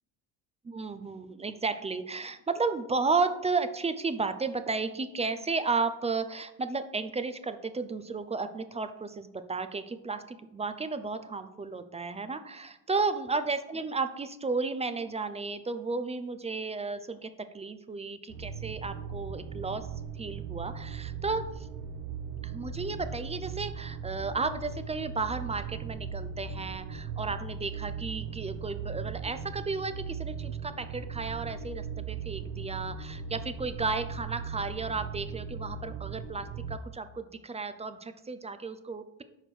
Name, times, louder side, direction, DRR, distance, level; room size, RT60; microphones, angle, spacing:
voice 1, 0.6-19.9 20.2-21.7 22.4-39.2, right 4 dB, 15° right, 10 dB, 0.3 m, -33 dB
sound 1, 18.3-36.8, right 6 dB, 80° right, 0.8 m, -38 dB
5.0 x 4.6 x 6.0 m, 0.90 s
hypercardioid pair, 65°, 50 cm